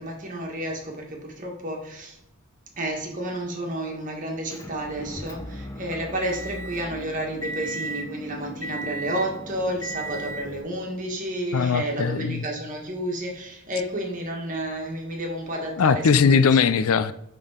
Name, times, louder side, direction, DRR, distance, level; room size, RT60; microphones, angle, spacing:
voice 1, 0.0-2.2 2.8-16.4, right 1 dB, 35° right, 0 dB, 1.7 m, -31 dB
Motor vehicle (road) / Engine, 4.5-10.6, right 1 dB, 15° left, 0.8 m, -35 dB
voice 2, 11.5-12.4 15.8-17.1, left 6 dB, 75° left, 15 dB, 0.4 m, -20 dB
10.5 x 3.8 x 5.1 m, 0.79 s
head